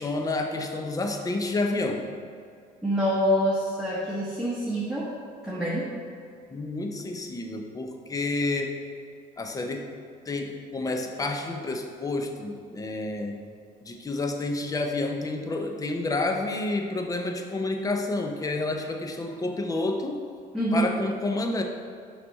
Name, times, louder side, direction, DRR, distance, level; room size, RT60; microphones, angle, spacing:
voice 1, 0.0-2.1 6.5-8.8 9.4-9.9 10.3-13.4 13.8-20.3 20.7-21.6, left 2 dB, 20° left, 4 dB, 0.6 m, -29 dB
voice 2, 2.8-5.1 5.4-5.8 20.5-20.9, equal, ahead, -7 dB, 1.1 m, -26 dB
5.8 x 3.5 x 5.3 m, 2.3 s
cardioid pair, 110°, 17 cm